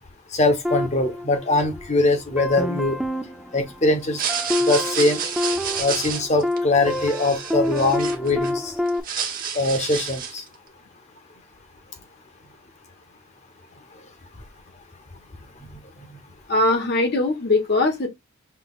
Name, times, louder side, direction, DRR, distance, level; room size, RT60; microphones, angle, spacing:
voice 1, 0.3-3.0 3.5-4.2 4.7-5.2 5.7-8.7 9.5-10.4, left 2 dB, 30° left, 0.9 m, -22 dB
sound 1, 0.6-1.9 2.4-9.0, left 1 dB, ahead, 0.4 m, -28 dB
sound 2, 4.0-8.5 8.9-10.5, right 7 dB, 40° right, 1.0 m, -30 dB
voice 2, 16.5-18.1, left 2 dB, 50° left, 1.1 m, -20 dB
5.7 x 3.0 x 2.3 m
head